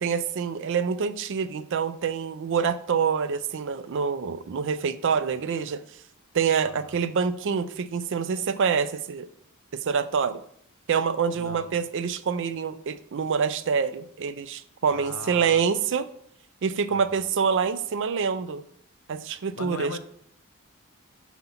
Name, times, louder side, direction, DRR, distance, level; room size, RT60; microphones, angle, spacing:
voice 1, 0.0-5.8 6.3-9.3 9.7-10.4 10.9-16.1 16.6-18.6 19.1-20.0, right 6 dB, 60° right, 13 dB, 0.4 m, -26 dB
voice 2, 6.6-7.0 11.3-11.8 14.9-15.6 16.9-17.3 19.6-20.0, left 4 dB, 75° left, 9 dB, 0.8 m, -40 dB
7.6 x 2.9 x 5.7 m, 0.67 s
head